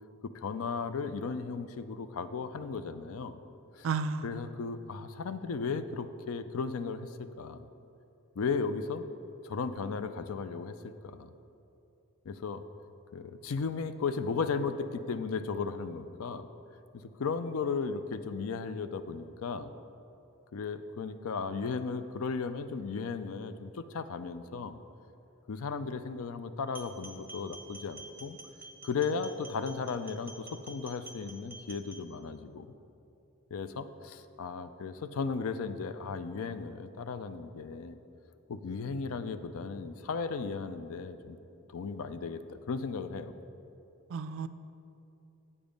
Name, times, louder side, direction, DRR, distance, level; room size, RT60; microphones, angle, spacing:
voice 1, 0.2-3.4 3.8-3.9 4.2-7.7 8.4-9.0 9.4-11.3 12.3-12.6 13.1-16.5 16.9-19.7 20.5-24.8 25.5-28.4 28.8-32.7 33.5-38.0 38.5-41.4 41.7-43.3, left 5 dB, 75° left, 11 dB, 0.4 m, -35 dB
voice 2, 3.8-4.5 44.1-44.5, right 5 dB, 65° right, 12 dB, 0.3 m, -33 dB
sound 1, 26.7-32.0, right 2 dB, 10° right, 0.7 m, -49 dB
8.5 x 7.0 x 5.1 m, 2.7 s
head